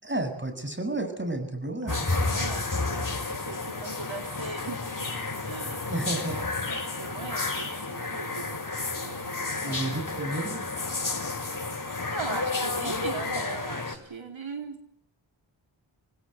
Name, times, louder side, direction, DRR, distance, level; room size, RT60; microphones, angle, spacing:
voice 1, 0.0-2.0 5.9-6.4 9.6-10.8, right 2 dB, 25° right, 8 dB, 7.5 m, -31 dB
voice 2, 1.8-5.1 5.4-10.0 12.1-14.8, right 4 dB, 75° right, 4 dB, 4.0 m, -40 dB
sound 1, 1.9-14.0, left 3 dB, 40° left, 5.8 m, -31 dB
28.0 x 19.5 x 8.2 m, 0.66 s
cardioid pair, 50°, 47 cm